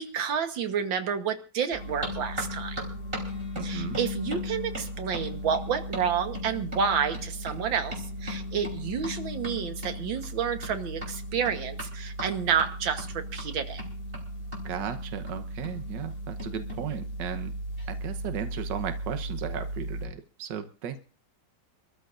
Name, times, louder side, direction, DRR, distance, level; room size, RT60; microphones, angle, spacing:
voice 1, 0.0-2.8 3.6-13.8, right 7 dB, 85° right, 8 dB, 2.0 m, -30 dB
sound 1, 1.7-20.1, equal, 30° right, 4.1 m, -36 dB
voice 2, 3.5-4.0 14.6-17.5 17.9-21.0, right 9 dB, 70° right, 8 dB, 1.7 m, -35 dB
26.0 x 13.5 x 2.6 m, 0.35 s
omnidirectional pair, 2.0 m